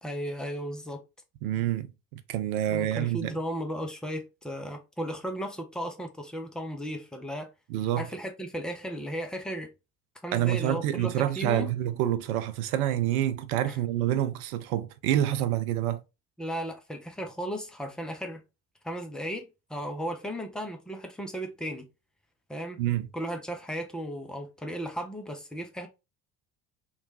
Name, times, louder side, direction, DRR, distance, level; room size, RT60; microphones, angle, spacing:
voice 1, 0.0-1.0 2.6-7.5 8.0-9.7 10.2-11.7 13.7-13.8 16.4-18.4 18.8-21.9 22.5-22.8 23.1-25.9, equal, ahead, 0.5 m, -35 dB
voice 2, 1.4-1.9 2.3-3.3 7.7-8.1 10.3-16.0 22.8-23.1, right 12 dB, 65° right, 0.6 m, -27 dB
3.0 x 2.2 x 2.6 m
figure-of-eight pair, 55°, 48 cm